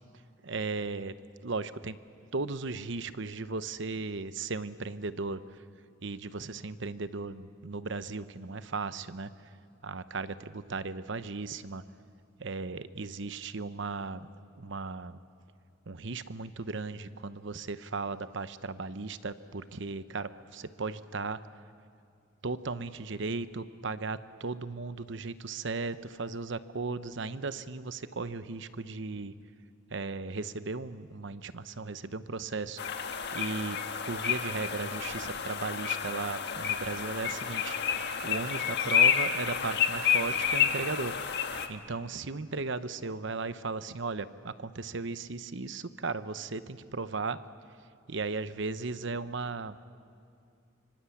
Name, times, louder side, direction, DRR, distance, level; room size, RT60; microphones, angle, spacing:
voice 1, 0.4-1.1 1.4-2.0 2.3-5.4 6.0-9.3 9.8-11.8 12.4-14.3 14.6-15.2 15.9-21.4 22.4-29.3 29.9-32.8 33.3-37.7 38.2-41.1 41.7-47.4 48.1-49.8, right 3 dB, 65° right, 13 dB, 0.9 m, -36 dB
sound 1, 32.8-41.7, left 8 dB, 60° left, 1.6 m, -30 dB
25.5 x 25.0 x 8.4 m, 2.4 s
head